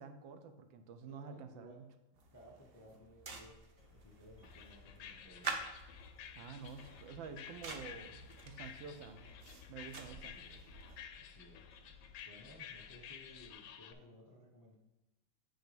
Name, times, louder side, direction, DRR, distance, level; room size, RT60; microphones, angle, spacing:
voice 1, 0.0-1.9 6.4-9.3 9.7-10.3, right 5 dB, 80° right, 8 dB, 1.4 m, -49 dB
voice 2, 1.1-1.8 2.3-5.6 10.1-10.7 11.2-11.6 12.2-14.8, equal, 20° left, -2 dB, 0.6 m, -59 dB
sound 1, 2.1-11.0, right 4 dB, 55° right, 0.6 m, -49 dB
sound 2, 3.8-13.5, left 3 dB, 15° right, 1.7 m, -62 dB
sound 3, 4.4-13.9, left 9 dB, 85° left, 1.4 m, -53 dB
9.3 x 3.9 x 5.1 m, 1.0 s
omnidirectional pair, 2.1 m